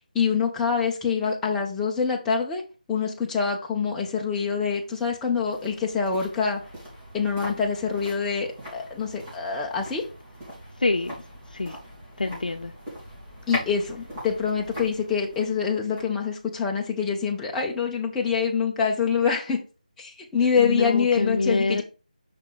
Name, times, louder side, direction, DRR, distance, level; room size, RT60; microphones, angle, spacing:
voice 1, 0.1-2.6 2.9-6.6 7.1-10.0 13.5-19.6 20.0-21.8, left 6 dB, 5° left, 0.5 m, -25 dB
sound 1, 4.3-17.5 17.8-17.9, equal, 25° right, 3.1 m, -41 dB
voice 2, 10.8-11.1 11.5-11.8 12.2-12.7 20.5-21.8, left 3 dB, 75° left, 0.5 m, -25 dB
5.5 x 3.8 x 4.6 m
figure-of-eight pair, 165°, 5 cm